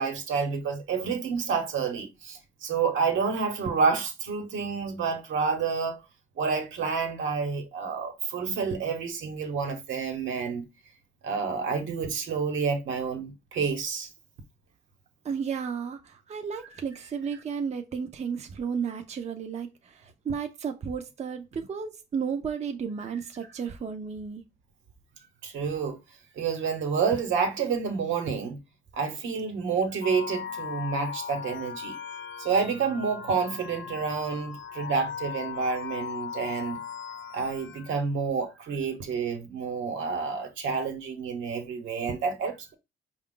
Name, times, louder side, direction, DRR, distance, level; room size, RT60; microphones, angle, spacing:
voice 1, 0.0-6.0 6.4-10.6 11.2-14.1 25.4-26.0 26.3-28.6 28.9-32.0 32.4-36.8 37.3-42.7, right 5 dB, 75° right, 1.1 m, -29 dB
voice 2, 15.2-24.4, right 6 dB, 35° right, 0.5 m, -33 dB
sound 1, 30.0-38.0, left 7 dB, 70° left, 0.4 m, -38 dB
5.1 x 2.4 x 3.7 m
cardioid pair, 90°, 20 cm